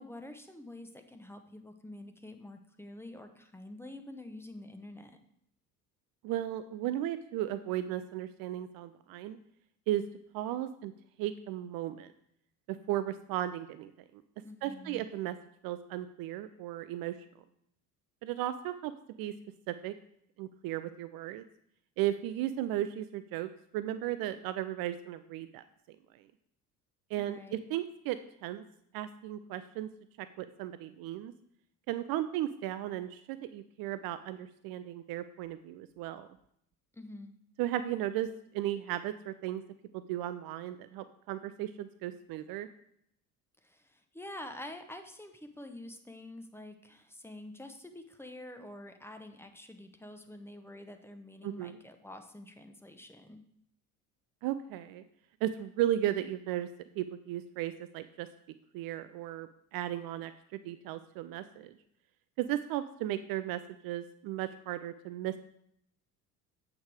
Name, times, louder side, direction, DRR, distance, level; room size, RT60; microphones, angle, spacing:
voice 1, 0.0-5.2 14.4-15.0 27.2-27.6 36.9-37.3 43.6-53.4, left 1 dB, 5° left, 6 dB, 0.9 m, -47 dB
voice 2, 6.2-9.4 9.9-10.0 10.3-10.9 11.2-12.1 12.7-14.2 14.6-15.4 15.6-17.2 18.2-18.9 19.2-19.3 19.7-19.9 20.4-21.4 22.0-25.6 27.1-28.6 28.9-29.9 30.2-31.3 31.9-36.3 37.6-38.3 38.5-39.6 39.9-42.7 51.4-51.8 54.4-55.0 55.4-56.7 57.0-58.3 58.7-61.7 62.4-65.4, right 13 dB, 50° right, 13 dB, 0.5 m, -35 dB
8.1 x 4.8 x 4.9 m, 0.72 s
hypercardioid pair, 60°, 45 cm